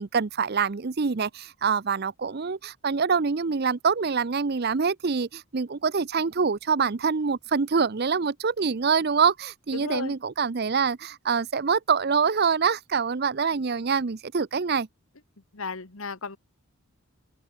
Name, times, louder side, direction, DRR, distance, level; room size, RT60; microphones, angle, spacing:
voice 1, 0.0-14.9, right 5 dB, 45° right, 0.6 m, -25 dB
voice 2, 9.7-10.1 15.5-16.4, left 4 dB, 70° left, 1.7 m, -34 dB
open air
head